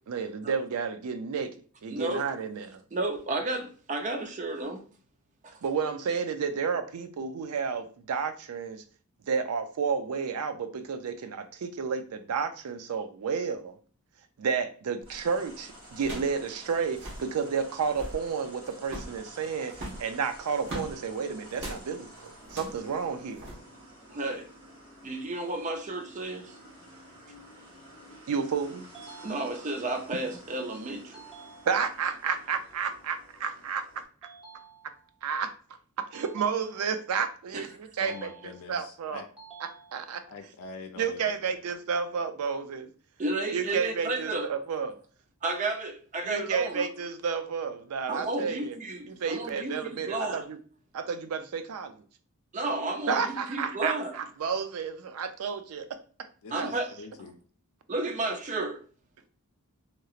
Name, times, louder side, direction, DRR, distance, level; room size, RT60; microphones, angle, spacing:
voice 1, 0.1-1.5 1.8-2.8 5.6-8.8 9.3-13.8 14.4-23.4 28.3-28.9 31.7-34.3 35.2-35.5 36.1-39.2 39.9-40.2 41.0-42.9 43.5-45.0 46.2-48.8 49.1-50.6 50.9-52.0 53.1-55.9 56.6-56.7, right 6 dB, 90° right, 0.4 m, -31 dB
voice 2, 1.9-2.2 2.9-4.8 5.4-5.5 24.1-24.5 25.0-26.6 29.2-31.2 37.5-37.6 43.2-44.5 45.4-46.9 48.1-50.4 52.5-54.2 56.5-56.9 57.9-58.8, right 2 dB, 35° right, 0.5 m, -32 dB
sound 1, 15.0-15.3 16.0-16.4 16.7-16.8 16.9-17.3 17.8-18.2 18.8-19.2 19.7-20.9 21.5-21.8 22.4-22.8 23.4-23.5, right 1 dB, 55° right, 1.1 m, -39 dB
sound 2, 15.1-34.0, equal, 70° right, 1.4 m, -51 dB
sound 3, 28.9-30.0 31.1-32.1 34.2-35.2 36.1-37.2 38.0-38.9 39.4-40.4, right 5 dB, 5° right, 0.7 m, -51 dB
voice 3, 38.0-39.3 40.3-41.6 56.4-57.4, left 4 dB, 80° left, 0.5 m, -45 dB
2.9 x 2.8 x 2.4 m
head